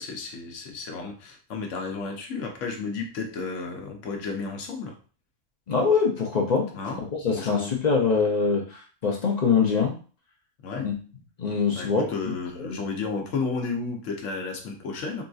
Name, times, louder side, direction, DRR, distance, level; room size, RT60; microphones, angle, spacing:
voice 1, 0.0-5.0 6.7-7.0 7.3-7.7 10.6-10.9 11.7-15.2, left 4 dB, 75° left, 3 dB, 1.0 m, -32 dB
voice 2, 5.7-6.7 7.0-10.0 10.8-10.9 11.4-12.0 12.6-12.8, left 5 dB, 50° left, 0 dB, 0.5 m, -23 dB
3.8 x 2.5 x 2.3 m, 0.38 s
omnidirectional pair, 1.3 m